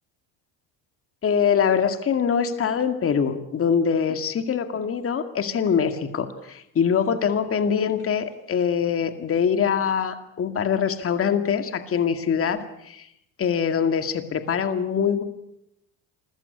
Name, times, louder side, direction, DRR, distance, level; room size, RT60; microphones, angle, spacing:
voice 1, 1.2-13.1 13.4-15.2, left 7 dB, 35° left, 8 dB, 2.2 m, -23 dB
27.0 x 15.5 x 8.4 m, 0.80 s
supercardioid pair, 105°, 37 cm